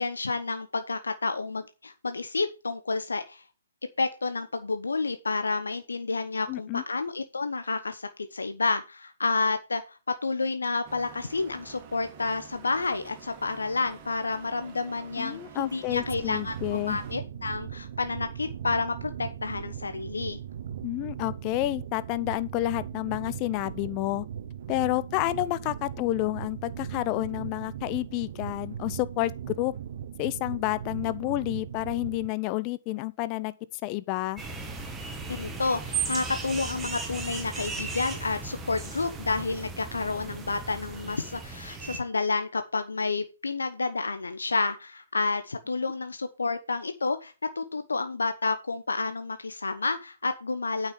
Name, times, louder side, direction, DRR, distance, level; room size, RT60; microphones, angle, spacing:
voice 1, 0.0-3.4 4.0-20.4 35.3-50.9, left 3 dB, 80° left, 0.9 m, -30 dB
voice 2, 6.5-6.8 15.2-17.0 20.8-24.2 24.7-29.3 29.6-29.7 30.2-33.5 33.8-34.4, left 18 dB, 30° left, 0.6 m, -29 dB
sound 1, 10.8-17.1, right 7 dB, 30° right, 2.0 m, -48 dB
sound 2, 15.9-32.3, right 9 dB, 50° right, 0.9 m, -39 dB
sound 3, 34.4-42.0, right 4 dB, 10° right, 1.6 m, -36 dB
9.0 x 5.8 x 5.4 m
figure-of-eight pair, 130°, 0 cm